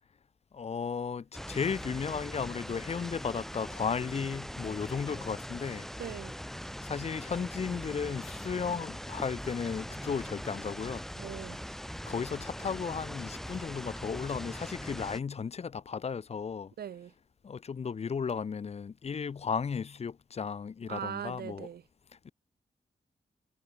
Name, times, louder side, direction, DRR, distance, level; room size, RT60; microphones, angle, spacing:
voice 1, 0.5-5.9 6.8-11.1 12.1-16.7 17.4-21.7 22.2-22.3, left 6 dB, 40° left, 0.5 m, -35 dB
sound 1, 1.3-15.2, equal, ahead, 1.2 m, -41 dB
voice 2, 6.0-6.3 11.2-11.6 16.8-17.1 20.9-21.8, right 9 dB, 80° right, 0.6 m, -40 dB
wide cardioid pair, 140°, 16 cm